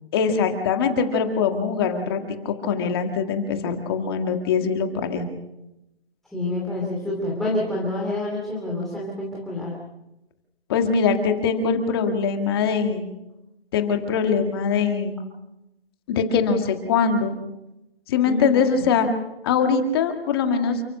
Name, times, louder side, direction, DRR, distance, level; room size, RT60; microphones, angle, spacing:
voice 1, 0.1-5.3 10.7-13.1 13.7-15.2 16.1-17.4 18.1-19.1 19.4-20.8, left 6 dB, 25° left, 5 dB, 1.9 m, -22 dB
voice 2, 6.3-9.7 18.2-18.8, left 2 dB, ahead, -5 dB, 2.7 m, -28 dB
29.5 x 14.5 x 6.6 m, 0.92 s
hypercardioid pair, 160°, 31 cm